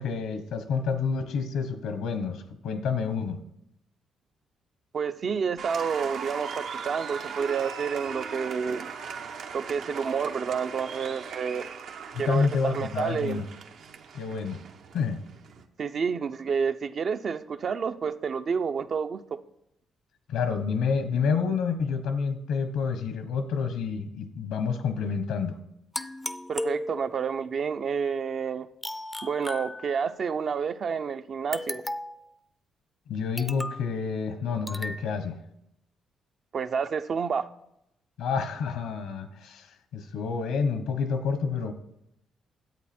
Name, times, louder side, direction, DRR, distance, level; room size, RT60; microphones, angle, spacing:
voice 1, 0.0-3.4 12.1-13.4 14.1-14.6 14.9-15.2 20.3-25.6 33.1-35.4 38.2-39.7 39.9-41.7, left 5 dB, 80° left, 10 dB, 1.0 m, -28 dB
voice 2, 4.9-8.9 9.5-11.6 12.2-13.4 15.8-19.2 26.5-28.7 29.2-31.8 36.5-37.4, right 6 dB, 50° right, 10 dB, 0.6 m, -29 dB
Applause, 5.6-15.6, right 6 dB, 70° right, 0.9 m, -39 dB
sound 1, 25.9-27.4 28.8-30.3 31.5-32.3 33.4-33.9 34.7-35.0, left 1 dB, 10° left, 0.4 m, -35 dB
10.5 x 8.1 x 4.4 m, 0.81 s
cardioid pair, 90°, 0 cm